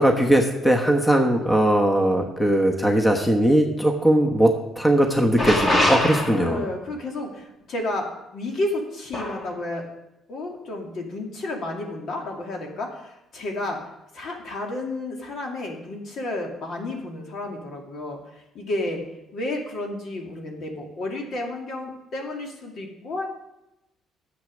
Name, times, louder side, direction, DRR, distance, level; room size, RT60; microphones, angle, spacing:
voice 1, 0.0-4.5 4.8-6.6, right 1 dB, 10° left, 2 dB, 1.1 m, -19 dB
sound 1, 5.4-6.7 9.1-9.5, left 1 dB, 30° left, 2.6 m, -23 dB
voice 2, 6.3-8.1 8.3-9.9 10.3-13.8 14.1-19.0 19.3-23.3, left 2 dB, 60° left, 1 dB, 2.4 m, -31 dB
10.0 x 7.8 x 6.3 m, 0.90 s
cardioid pair, 110°, 0 cm